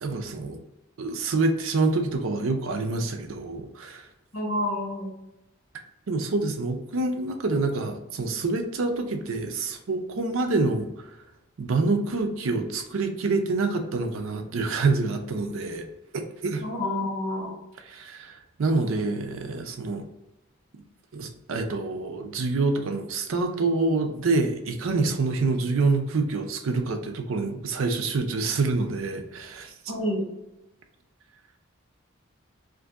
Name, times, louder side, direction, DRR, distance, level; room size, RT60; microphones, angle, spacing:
voice 1, 0.0-0.6 1.0-4.1 6.1-10.9 11.6-15.9 16.1-16.6 17.8-20.1 21.1-29.7, right 3 dB, 80° right, 5 dB, 0.5 m, -27 dB
voice 2, 4.3-5.1 16.6-17.5 29.9-30.2, left 1 dB, 70° left, -2 dB, 1.2 m, -28 dB
2.6 x 2.6 x 3.4 m, 0.93 s
head